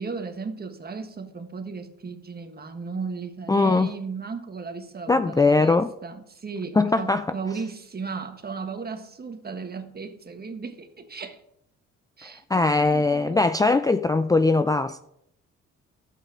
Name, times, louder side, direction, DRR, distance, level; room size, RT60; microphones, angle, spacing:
voice 1, 0.0-11.4 12.2-13.4, right 4 dB, 30° right, 1.6 m, -35 dB
voice 2, 3.5-3.9 5.1-5.9 6.8-7.3 12.5-15.0, left 3 dB, 10° left, 0.4 m, -20 dB
12.0 x 8.4 x 5.0 m
cardioid pair, 90°, 30 cm